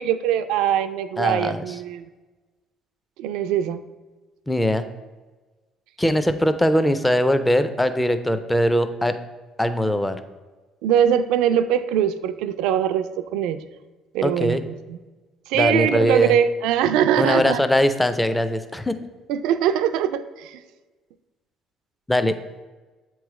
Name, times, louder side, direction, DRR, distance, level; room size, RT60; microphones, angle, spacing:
voice 1, 0.0-2.0 3.2-3.8 10.8-13.1 13.3-13.6 14.1-14.6 14.9-15.0 15.5-17.6 19.3-20.6, right 9 dB, 80° right, 11 dB, 0.3 m, -22 dB
voice 2, 1.2-1.7 4.5-4.8 6.0-9.2 9.6-10.2 14.2-14.7 15.5-16.4 17.2-19.0 22.1-22.4, left 1 dB, 10° left, 10 dB, 0.5 m, -21 dB
7.3 x 3.1 x 4.8 m, 1.2 s
supercardioid pair, 80°, 0 cm